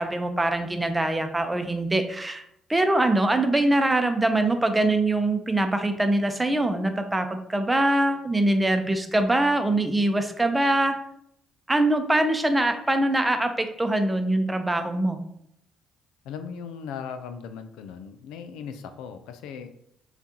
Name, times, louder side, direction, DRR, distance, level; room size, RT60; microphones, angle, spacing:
voice 1, 0.0-2.4 2.7-10.9 11.7-15.2, right 1 dB, 15° right, 7 dB, 0.7 m, -23 dB
voice 2, 16.2-19.7, left 6 dB, 80° left, 9 dB, 0.4 m, -38 dB
6.8 x 2.5 x 2.8 m, 0.74 s
hypercardioid pair, 55°, 0 cm